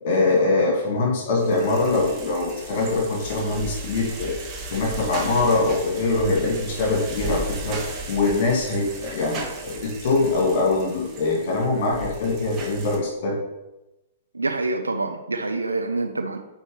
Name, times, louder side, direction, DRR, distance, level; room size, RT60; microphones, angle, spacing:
voice 1, 0.0-4.4 4.7-7.8 8.1-13.4, left 3 dB, 50° left, -2 dB, 1.8 m, -23 dB
sound 1, 1.4-13.0, right 2 dB, 25° right, 1.3 m, -36 dB
voice 2, 14.3-16.4, right 2 dB, 85° right, 5 dB, 0.5 m, -26 dB
9.0 x 4.4 x 3.1 m, 0.98 s
figure-of-eight pair, 110°, 0 cm